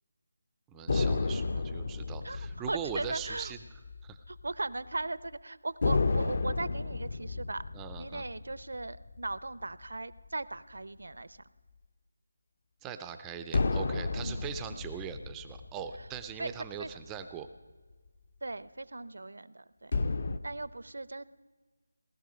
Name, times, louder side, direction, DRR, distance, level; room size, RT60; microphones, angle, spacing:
voice 1, 0.7-3.6 4.0-4.2 7.7-8.2 12.8-17.5, right 8 dB, 10° right, 8 dB, 0.4 m, -41 dB
sound 1, 0.9-4.6 4.9-5.0 5.8-10.4 13.5-17.1 19.9-20.4, left 3 dB, 45° left, 0.6 m, -33 dB
voice 2, 2.7-3.5 4.3-7.6 8.0-11.5 14.2-14.9 16.0-16.1 16.4-16.5 16.8-16.9 18.4-20.0 20.4-21.2, right 2 dB, 80° right, 17 dB, 0.6 m, -38 dB
18.0 x 12.5 x 5.1 m, 1.4 s
figure-of-eight pair, 175°, 0 cm